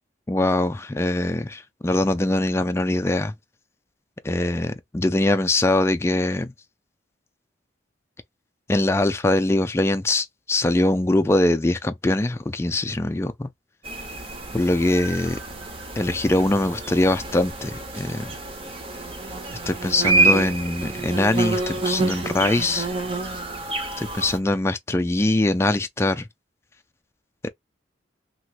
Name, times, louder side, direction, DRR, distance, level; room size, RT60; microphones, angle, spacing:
voice 1, 0.3-3.3 4.2-6.5 8.7-13.5 14.5-15.4 16.0-18.3 19.7-22.9 24.0-26.3 27.4-27.5, left 2 dB, 15° left, 0.3 m, -22 dB
sound 1, 13.8-24.4, right 2 dB, 30° right, 0.8 m, -27 dB
3.0 x 2.9 x 2.3 m
head